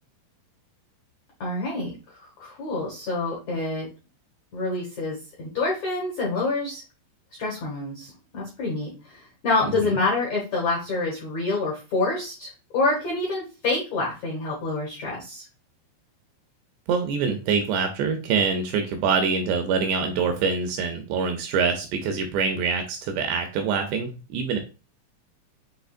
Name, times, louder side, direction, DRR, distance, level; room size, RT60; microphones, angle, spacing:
voice 1, 1.4-3.9 4.5-6.8 7.4-15.4, left 3 dB, 75° left, -3 dB, 1.6 m, -27 dB
voice 2, 16.9-24.6, right 5 dB, 80° right, 5 dB, 2.6 m, -25 dB
7.5 x 2.9 x 2.5 m, 0.32 s
omnidirectional pair, 5.5 m